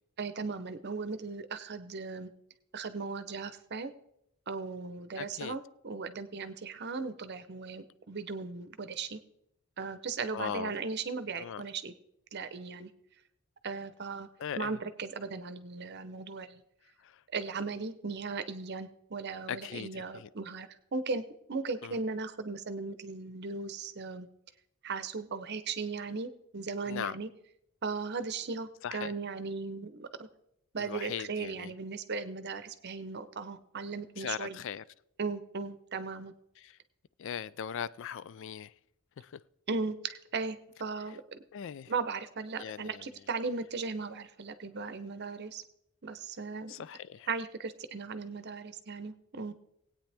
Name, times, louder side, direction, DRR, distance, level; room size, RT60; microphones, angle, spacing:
voice 1, 0.2-2.3 2.7-3.9 4.5-9.2 9.8-11.9 12.3-12.9 13.6-14.3 14.6-16.6 17.3-24.3 24.8-27.3 27.8-30.3 30.7-34.6 35.2-36.3 39.7-41.2 41.9-45.6 46.0-46.7 47.3-49.5, right 4 dB, 50° right, 0.7 m, -37 dB
voice 2, 5.2-5.6 10.3-10.7 11.3-11.6 14.4-14.8 17.0-17.2 19.5-20.3 21.8-22.0 26.9-27.2 28.8-29.1 30.8-31.7 34.2-34.8 36.6-36.8 37.2-38.7 39.2-39.4 41.5-41.9 42.6-43.1 46.7-47.3, left 8 dB, 60° left, 0.3 m, -39 dB
19.5 x 8.8 x 3.4 m
head